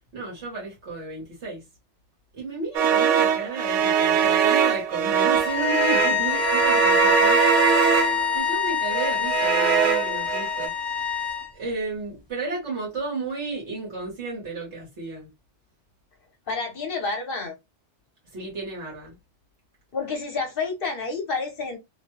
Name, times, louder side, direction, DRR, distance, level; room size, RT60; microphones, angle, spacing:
voice 1, 0.1-1.6 2.3-11.1 11.5-15.3 18.3-19.2, right 3 dB, 70° right, 1.4 m, -33 dB
sound 1, 2.7-8.4 8.9-10.7, right 8 dB, 85° right, 1.0 m, -22 dB
sound 2, 5.4-11.5, left 8 dB, 25° left, 0.9 m, -25 dB
voice 2, 16.5-17.5 19.9-21.8, left 4 dB, 55° left, 1.0 m, -29 dB
2.9 x 2.2 x 3.0 m
omnidirectional pair, 1.2 m